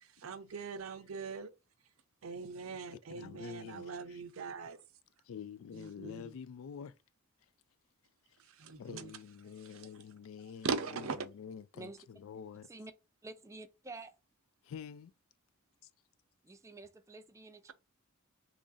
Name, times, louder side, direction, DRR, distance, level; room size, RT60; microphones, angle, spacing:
voice 1, 0.0-1.5 2.2-4.8 5.7-6.3 8.4-9.1 9.7-9.8 10.6-11.3, right 4 dB, 90° right, 0.5 m, -40 dB
voice 2, 3.1-4.2 5.2-7.0 7.4-7.5 8.3-8.4 8.8-12.7 14.6-15.1 15.8-15.9, left 7 dB, 80° left, 0.3 m, -47 dB
voice 3, 13.2-14.1 16.4-17.7, right 2 dB, 15° right, 0.4 m, -49 dB
3.0 x 2.5 x 3.8 m
head